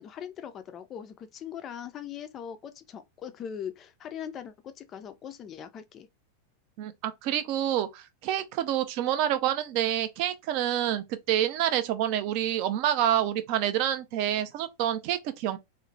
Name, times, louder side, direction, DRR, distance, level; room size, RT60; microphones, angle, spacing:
voice 1, 0.0-6.1, left 8 dB, 30° left, 0.3 m, -40 dB
voice 2, 6.8-15.6, right 11 dB, 45° right, 0.4 m, -28 dB
2.8 x 2.0 x 2.6 m
figure-of-eight pair, 90°, 0 cm